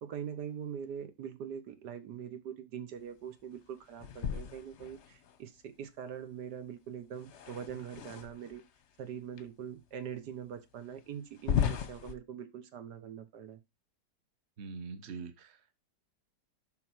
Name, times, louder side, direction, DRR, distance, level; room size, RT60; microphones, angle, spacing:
voice 1, 0.0-8.6 9.0-13.6, right 8 dB, 75° right, 1.5 m, -43 dB
sound 1, 4.0-5.4 7.1-8.6 9.4-9.5 10.1-10.2 11.3-12.1, left 8 dB, 50° left, 0.9 m, -35 dB
voice 2, 14.6-15.8, right 5 dB, 45° right, 1.3 m, -44 dB
11.5 x 4.0 x 4.5 m
omnidirectional pair, 1.9 m